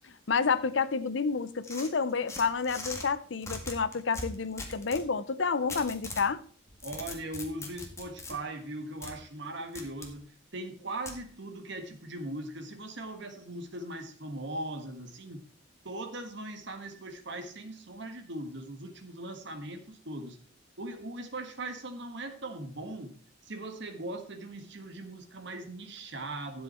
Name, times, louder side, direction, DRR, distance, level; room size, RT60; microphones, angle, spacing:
voice 1, 0.3-6.4, left 5 dB, 65° left, 15 dB, 0.7 m, -29 dB
sound 1, 1.6-3.1 3.4-5.1 5.7-6.3 6.7-8.3 9.0-9.1 9.7-10.1 11.1-11.2, left 2 dB, 15° left, 1.8 m, -40 dB
voice 2, 6.8-15.4 15.8-20.4 20.8-23.2 23.4-26.6, right 1 dB, 65° right, 6 dB, 1.6 m, -40 dB
12.0 x 7.5 x 4.4 m, 0.43 s
head